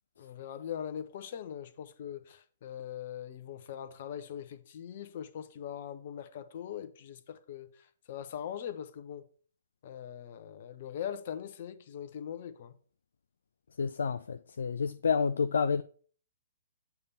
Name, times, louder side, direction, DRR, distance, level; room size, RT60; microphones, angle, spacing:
voice 1, 0.2-7.7 8.1-9.2 9.8-12.7, left 9 dB, 45° left, 0.8 m, -41 dB
voice 2, 13.8-15.8, left 6 dB, 60° left, 0.3 m, -29 dB
8.1 x 3.5 x 5.6 m
figure-of-eight pair, 120°, 0 cm